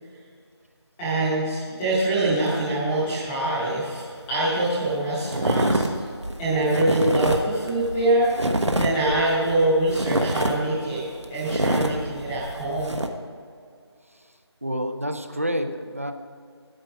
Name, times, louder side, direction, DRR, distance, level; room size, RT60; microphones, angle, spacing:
voice 1, 1.0-4.0 4.3-6.1 6.4-8.3 8.7-11.0 11.3-13.0, right 1 dB, 5° left, -9 dB, 0.9 m, -24 dB
sound 1, 4.3-4.4 4.6-4.9 5.2-13.1, right 1 dB, 80° right, 1.1 m, -26 dB
voice 2, 14.6-16.1, equal, 30° right, 7 dB, 0.5 m, -28 dB
10.5 x 8.8 x 5.2 m, 2.2 s
figure-of-eight pair, 170°, 14 cm